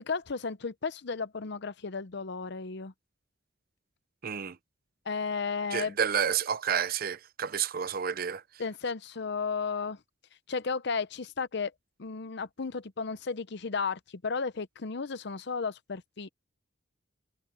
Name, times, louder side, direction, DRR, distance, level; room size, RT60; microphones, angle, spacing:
voice 1, 0.0-2.9 5.1-5.9 8.6-10.0 10.5-11.7 12.0-16.3, left 5 dB, 60° left, 0.8 m, -34 dB
voice 2, 4.2-4.6 5.7-8.4, right 7 dB, 50° right, 0.7 m, -30 dB
head